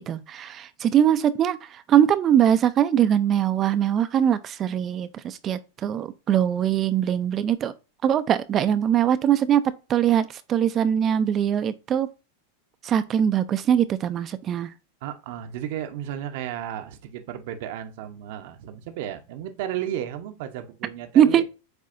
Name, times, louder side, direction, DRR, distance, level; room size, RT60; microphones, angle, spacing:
voice 1, 0.1-7.7 8.0-12.1 12.8-14.7 21.1-21.4, right 9 dB, 35° right, 0.4 m, -22 dB
voice 2, 15.0-21.4, right 11 dB, 60° right, 0.7 m, -33 dB
7.7 x 2.7 x 2.5 m
hypercardioid pair, 110°, 0 cm